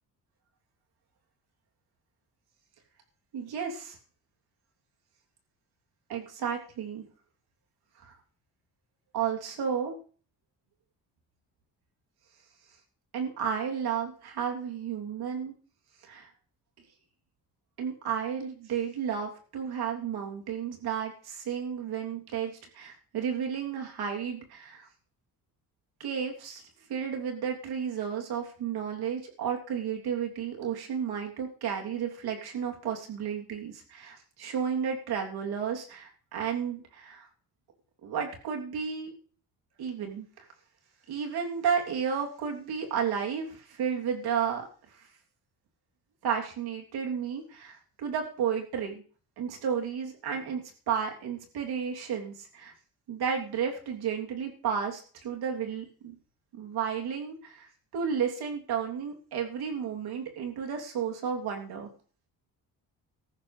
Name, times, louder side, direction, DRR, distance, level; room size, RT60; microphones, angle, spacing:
voice 1, 3.3-4.0 6.1-7.0 8.0-8.1 9.1-9.9 13.1-15.5 16.0-16.3 17.8-24.9 26.0-37.3 38.0-39.1 39.8-40.4 41.1-44.6 44.9-45.1 46.2-49.0 49.4-52.7 53.1-56.1 56.5-61.9, right 7 dB, 80° right, 1 dB, 3.3 m, -32 dB
17.0 x 14.0 x 3.4 m, 0.42 s
cardioid pair, 135°, 37 cm